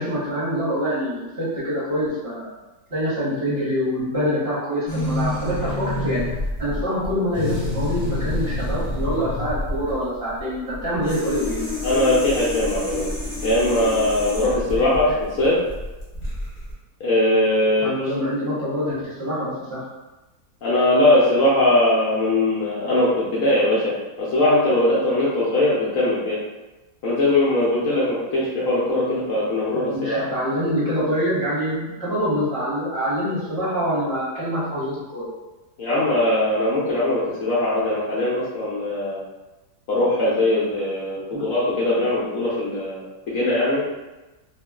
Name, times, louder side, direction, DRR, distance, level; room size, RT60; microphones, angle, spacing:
voice 1, 0.0-2.5 2.9-6.2 6.6-11.7 14.7-15.1 17.8-19.8 29.7-35.3 41.3-41.5, equal, 45° right, -10 dB, 1.0 m, -25 dB
sound 1, 4.9-16.7, left 2 dB, 25° left, 0.7 m, -28 dB
voice 2, 11.8-13.1 13.4-15.1 15.4-15.6 17.0-17.9 20.6-26.4 27.0-30.2 35.8-39.2 39.9-43.8, left 1 dB, 65° left, -7 dB, 0.9 m, -20 dB
2.9 x 2.4 x 2.3 m, 1.1 s
omnidirectional pair, 1.8 m